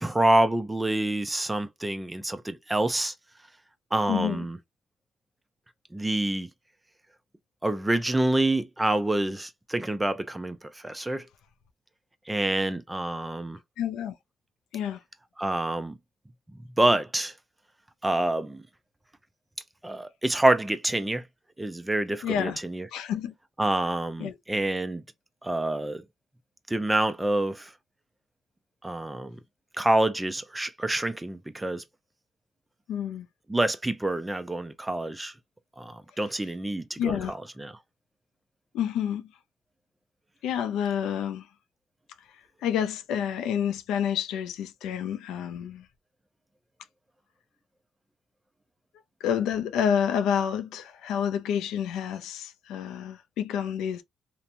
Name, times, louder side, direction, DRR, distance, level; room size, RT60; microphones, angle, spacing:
voice 1, 0.0-3.1 3.9-4.6 5.9-6.5 7.6-11.2 12.3-13.6 15.4-16.0 16.8-17.3 18.0-18.6 19.8-21.2 21.6-22.9 23.6-25.0 25.4-26.0 26.7-27.7 28.8-29.4 29.8-31.8 33.5-35.3 35.8-37.7, right 1 dB, 10° right, 0.5 m, -27 dB
voice 2, 4.1-4.4 13.8-14.1 14.7-15.0 22.2-22.6 22.9-23.3 24.2-24.4 32.9-33.3 37.0-37.4 38.7-39.3 40.4-41.5 42.6-45.9 49.2-54.0, left 8 dB, 90° left, 0.4 m, -29 dB
2.9 x 2.1 x 2.5 m
cardioid pair, 90°, 0 cm